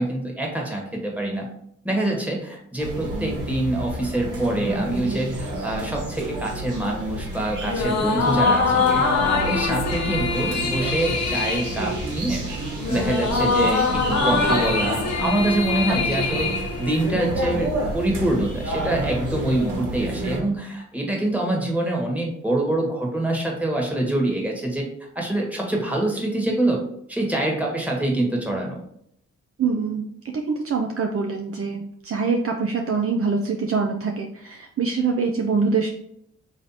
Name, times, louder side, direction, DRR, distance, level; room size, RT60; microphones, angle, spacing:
voice 1, 0.0-1.5 1.8-8.9 9.2-12.4 12.9-16.5 16.8-24.8 25.1-26.8 27.1-28.8, right 1 dB, 5° right, -1 dB, 1.4 m, -25 dB
sound 1, 2.8-20.4, right 1 dB, 75° right, 1.3 m, -30 dB
sound 2, 7.6-17.4, left 4 dB, 60° left, 0.7 m, -24 dB
voice 2, 29.6-35.9, right 4 dB, 45° right, 2 dB, 0.5 m, -24 dB
3.1 x 2.8 x 4.0 m, 0.70 s
supercardioid pair, 50°, 31 cm